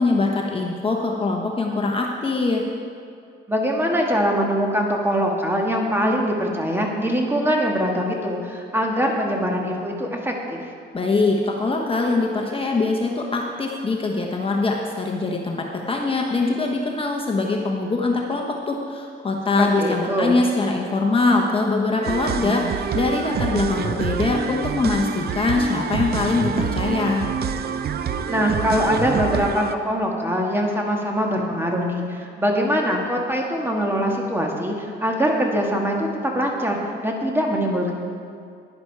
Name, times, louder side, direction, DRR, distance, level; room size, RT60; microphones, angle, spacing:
voice 1, 0.0-2.6 10.9-27.2, left 3 dB, 25° left, 0 dB, 1.1 m, -23 dB
voice 2, 3.5-10.6 19.6-20.4 28.3-37.9, equal, 10° right, 0 dB, 1.9 m, -23 dB
sound 1, 22.0-29.7, right 7 dB, 55° right, 0.6 m, -27 dB
11.0 x 10.5 x 4.7 m, 2.3 s
cardioid pair, 90°, 20 cm